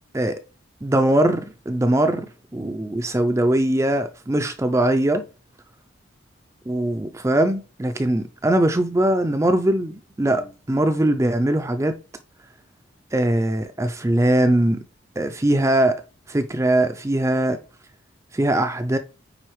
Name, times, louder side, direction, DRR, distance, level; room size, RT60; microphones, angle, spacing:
voice 1, 0.8-5.2 6.7-12.0 13.1-14.8 15.2-16.0 16.3-17.6 18.3-19.0, right 1 dB, 15° right, 0.4 m, -21 dB
9.1 x 3.8 x 3.1 m
head